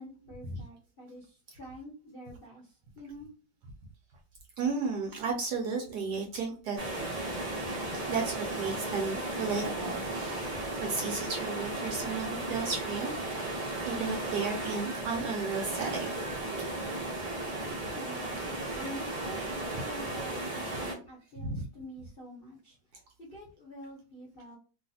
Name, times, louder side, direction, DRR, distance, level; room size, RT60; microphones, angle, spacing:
voice 1, 0.0-3.3 17.9-22.8 23.2-24.6, equal, 50° left, -4 dB, 0.6 m, -47 dB
voice 2, 4.6-6.8 7.9-10.6 10.9-13.1 13.8-16.5 19.7-19.9 21.4-21.6, right 4 dB, 70° right, 1 dB, 1.0 m, -34 dB
sound 1, 6.8-20.9, right 2 dB, 50° right, 0.4 m, -35 dB
3.1 x 2.4 x 2.7 m, 0.35 s
omnidirectional pair, 2.2 m